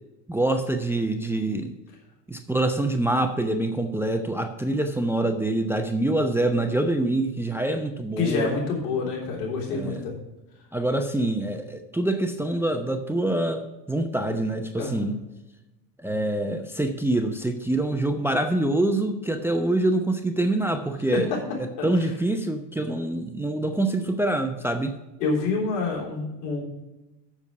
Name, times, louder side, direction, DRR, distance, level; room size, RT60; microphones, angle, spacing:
voice 1, 0.3-1.8 2.3-8.6 9.7-10.0 10.7-15.2 16.0-21.3 21.6-24.9, right 1 dB, 5° right, 6 dB, 0.7 m, -25 dB
voice 2, 8.2-10.1 14.8-14.9 21.8-22.1 25.2-26.6, left 4 dB, 75° left, -2 dB, 3.8 m, -27 dB
7.2 x 7.0 x 6.8 m, 1.0 s
supercardioid pair, 90°, 50 cm